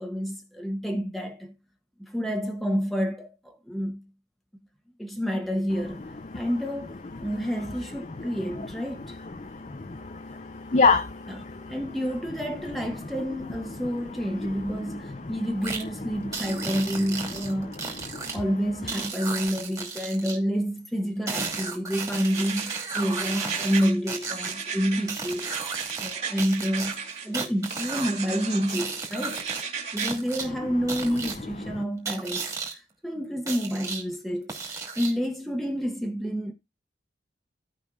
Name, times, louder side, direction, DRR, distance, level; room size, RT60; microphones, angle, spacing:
voice 1, 0.0-1.5 2.0-4.0 5.0-6.0 6.3-6.9 7.2-9.2 11.3-17.8 18.3-25.5 26.0-29.6 29.9-36.5, equal, ahead, 1.3 m, -29 dB
voice 2, 9.4-11.6 18.1-18.3, left 4 dB, 40° left, 0.6 m, -25 dB
sound 1, 15.6-15.8 16.3-18.3 18.9-20.4 21.3-24.5 25.1-26.1 26.4-28.1 28.7-29.6 30.0-30.4 30.9-31.3 32.0-32.7 33.5-34.0 34.5-35.2, right 4 dB, 20° right, 2.5 m, -34 dB
sound 2, 22.2-24.0 24.3-27.3 27.7-28.8 29.1-30.1, right 6 dB, 35° right, 3.1 m, -35 dB
17.0 x 5.6 x 2.4 m
head